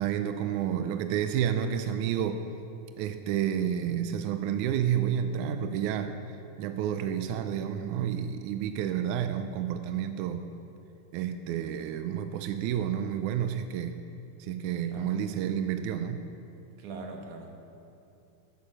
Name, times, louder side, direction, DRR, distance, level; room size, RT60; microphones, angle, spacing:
voice 1, 0.0-2.5 3.0-10.5 11.1-14.0 14.4-16.2, right 9 dB, 80° right, 8 dB, 1.8 m, -30 dB
voice 2, 16.8-17.5, right 3 dB, 65° right, 2 dB, 2.8 m, -42 dB
14.0 x 11.5 x 6.4 m, 2.7 s
omnidirectional pair, 3.9 m